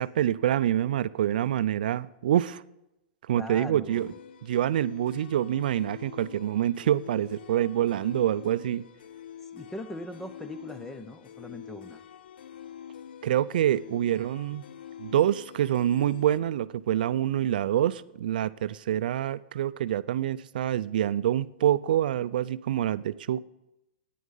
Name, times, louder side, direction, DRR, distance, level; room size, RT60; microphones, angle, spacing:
voice 1, 0.0-2.6 3.3-4.1 4.4-8.8 13.2-14.6 15.0-23.4, right 11 dB, 65° right, 16 dB, 0.4 m, -26 dB
voice 2, 3.4-4.1 9.5-12.0, left 1 dB, 5° left, 12 dB, 0.4 m, -40 dB
sound 1, 3.9-16.4, left 9 dB, 85° left, 0.5 m, -46 dB
9.6 x 9.3 x 5.5 m, 0.90 s
supercardioid pair, 170°, 5 cm